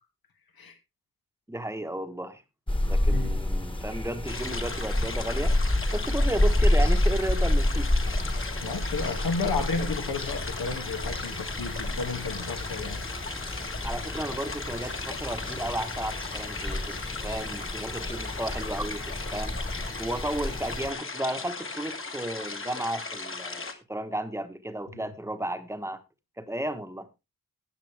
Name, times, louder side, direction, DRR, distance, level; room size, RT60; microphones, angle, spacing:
voice 1, 1.5-2.4 2.8-5.6 5.9-7.9 13.8-17.0 17.2-19.6 20.0-26.0 26.4-27.1, right 1 dB, 10° right, 1.3 m, -33 dB
sound 1, 2.7-20.9, left 1 dB, 15° left, 1.5 m, -29 dB
sound 2, 4.3-23.7, left 3 dB, 35° left, 1.6 m, -37 dB
voice 2, 8.6-13.0 24.9-25.0, left 4 dB, 90° left, 2.5 m, -32 dB
13.5 x 9.2 x 3.5 m
wide cardioid pair, 160°, 35 cm